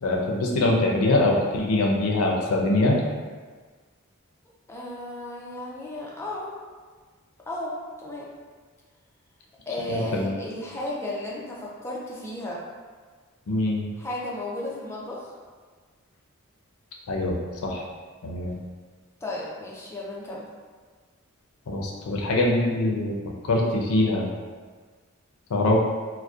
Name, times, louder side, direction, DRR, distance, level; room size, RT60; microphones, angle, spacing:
voice 1, 0.0-3.0 9.9-10.3 13.5-13.8 17.1-17.3 17.6-17.8 18.2-18.5 21.7-23.1 23.5-24.2 25.5-25.8, left 2 dB, 90° left, -1 dB, 0.4 m, -23 dB
voice 2, 4.7-6.5 7.5-8.3 9.7-12.6 14.0-15.3 19.2-20.5, left 1 dB, 10° left, -5 dB, 0.4 m, -34 dB
2.6 x 2.0 x 2.3 m, 1.5 s
head